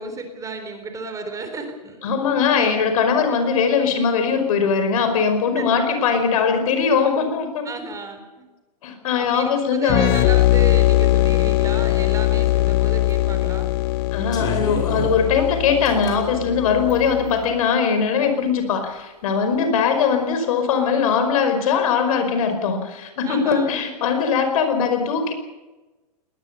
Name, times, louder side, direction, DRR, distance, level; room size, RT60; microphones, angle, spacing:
voice 1, 0.0-2.9 3.3-3.4 5.6-6.0 7.6-8.3 9.2-13.7 23.3-23.7, right 4 dB, 15° right, 7 dB, 3.9 m, -33 dB
voice 2, 2.0-7.7 8.8-10.0 14.1-25.3, left 6 dB, 60° left, 7 dB, 5.2 m, -20 dB
sound 1, 9.9-17.4, left 16 dB, 40° left, 1.0 m, -20 dB
sound 2, 12.5-12.6 13.1-13.4 13.9-16.2 16.9-17.4, equal, 20° left, 6.1 m, -31 dB
20.5 x 20.5 x 6.9 m, 1.1 s
hypercardioid pair, 120°, 21 cm